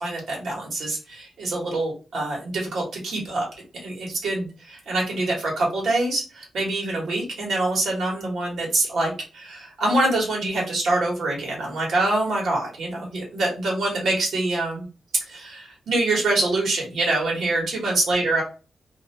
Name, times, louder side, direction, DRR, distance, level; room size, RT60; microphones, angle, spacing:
voice 1, 0.0-3.5 3.8-14.9 15.3-18.4, right 2 dB, 80° right, -2 dB, 1.2 m, -25 dB
2.6 x 2.1 x 2.6 m, 0.32 s
wide cardioid pair, 145°, 0 cm